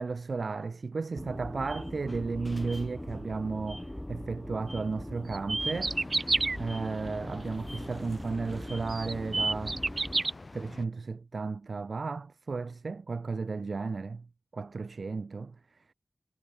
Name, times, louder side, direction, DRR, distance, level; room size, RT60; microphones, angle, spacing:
voice 1, 0.0-9.8 10.5-14.3 14.5-15.6, right 4 dB, 65° right, 1.8 m, -34 dB
sound 1, 1.2-10.2, left 1 dB, 10° left, 4.9 m, -41 dB
sound 2, 5.3-6.6 8.3-8.4 8.9-10.3, right 3 dB, 45° right, 2.3 m, -28 dB
sound 3, 5.6-10.9, left 3 dB, 40° left, 7.5 m, -47 dB
wide cardioid pair, 100°, 0 cm